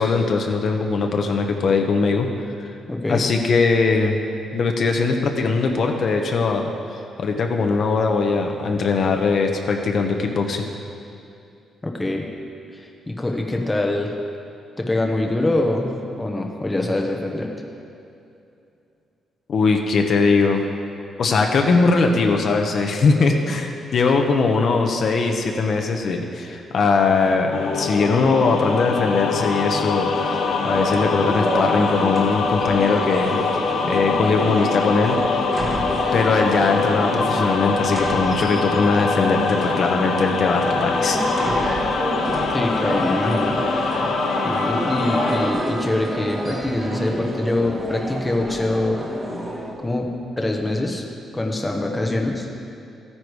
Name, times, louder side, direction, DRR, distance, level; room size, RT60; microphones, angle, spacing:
voice 1, 0.0-2.3 2.6-2.7 3.1-4.2 4.5-10.7 19.5-20.7 21.2-33.5 33.8-35.4 36.1-41.2, left 4 dB, 50° left, 3 dB, 1.0 m, -20 dB
voice 2, 2.9-3.3 11.9-12.3 12.7-14.1 14.8-17.5 42.5-43.6 44.4-49.0 49.8-50.1 50.4-51.0 51.3-52.5, left 2 dB, 10° left, 1 dB, 1.0 m, -24 dB
sound 1, 27.5-45.5, left 4 dB, 75° left, 1.0 m, -24 dB
sound 2, 30.1-49.7, right 1 dB, 20° right, 1.5 m, -29 dB
Wind instrument woodwind instrument, 44.2-47.8, right 2 dB, 40° right, 2.7 m, -34 dB
14.0 x 9.7 x 4.8 m, 2.6 s
cardioid pair, 145°, 0 cm